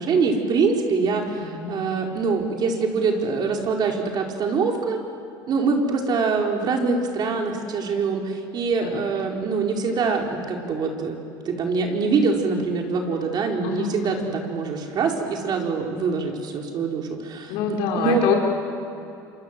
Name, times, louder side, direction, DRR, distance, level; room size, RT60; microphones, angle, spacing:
voice 1, 0.0-5.0 5.5-11.2 11.4-18.2, right 4 dB, 50° right, 1 dB, 4.7 m, -24 dB
voice 2, 1.4-2.1 8.8-9.3 13.6-14.3 17.5-18.4, left 7 dB, 80° left, 1 dB, 5.4 m, -27 dB
27.5 x 25.0 x 7.7 m, 2.7 s
supercardioid pair, 105°, 9 cm